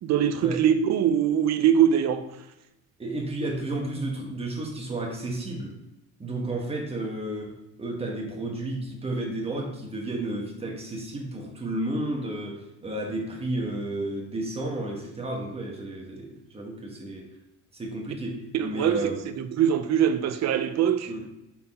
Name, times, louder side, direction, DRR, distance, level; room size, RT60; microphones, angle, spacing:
voice 1, 0.0-2.3 18.5-21.1, right 9 dB, 55° right, 0.6 m, -23 dB
voice 2, 3.0-5.8 6.2-17.3 17.7-19.2 21.1-21.2, right 2 dB, 20° right, 1.2 m, -32 dB
5.7 x 4.3 x 4.2 m
cardioid pair, 165°, 33 cm